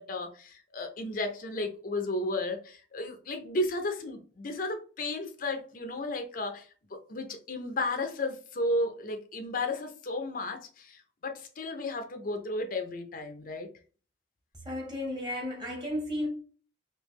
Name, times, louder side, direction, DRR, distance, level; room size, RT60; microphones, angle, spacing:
voice 1, 0.0-13.7, left 2 dB, 50° left, 0.6 m, -33 dB
voice 2, 14.6-16.3, left 1 dB, 25° right, 1.4 m, -33 dB
3.3 x 2.8 x 3.2 m
head